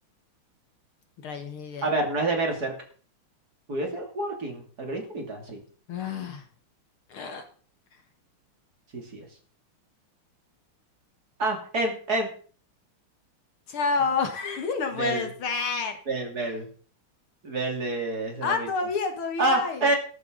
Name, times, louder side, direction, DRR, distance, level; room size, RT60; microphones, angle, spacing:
voice 1, 1.2-1.9 5.9-6.5 7.1-7.4 13.7-16.0 18.4-19.9, left 4 dB, 75° left, 6 dB, 2.4 m, -29 dB
voice 2, 1.8-2.7 3.7-5.6 8.9-9.2 11.4-12.3 15.0-15.2 16.1-16.7 17.4-18.7 19.4-20.0, right 2 dB, 45° right, 2 dB, 3.3 m, -28 dB
14.5 x 12.5 x 3.9 m, 0.43 s
omnidirectional pair, 2.4 m